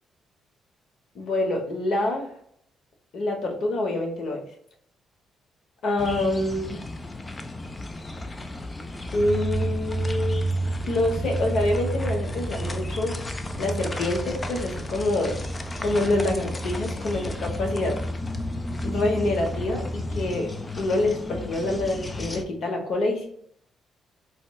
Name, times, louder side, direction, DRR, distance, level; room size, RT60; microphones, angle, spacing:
voice 1, 1.1-2.3 3.1-4.4 5.8-6.8 9.1-10.5 10.9-13.1 13.6-15.4 15.8-18.0 18.8-23.3, left 2 dB, 70° left, 2 dB, 0.8 m, -26 dB
sound 1, 6.0-22.4, left 2 dB, 25° left, 0.4 m, -35 dB
sound 2, 9.1-20.3, right 2 dB, 10° left, 1.0 m, -31 dB
4.0 x 2.1 x 2.2 m, 0.67 s
cardioid pair, 75°, 0 cm